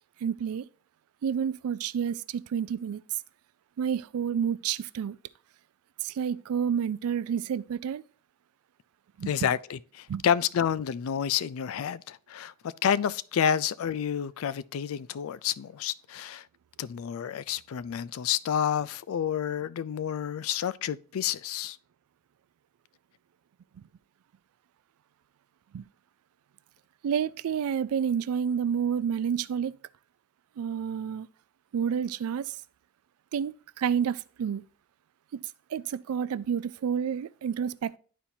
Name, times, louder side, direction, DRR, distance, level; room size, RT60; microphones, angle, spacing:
voice 1, 0.2-0.7 1.2-3.0 3.8-5.2 6.0-8.0 9.2-9.3 10.1-10.2 25.7-25.8 27.0-29.7 30.6-31.3 31.7-32.6 33.3-34.6 35.3-35.4 35.7-38.0, right 7 dB, 80° right, 0.3 m, -29 dB
voice 2, 9.3-16.5 16.8-21.8, left 8 dB, 70° left, 0.3 m, -29 dB
11.0 x 4.3 x 2.7 m
head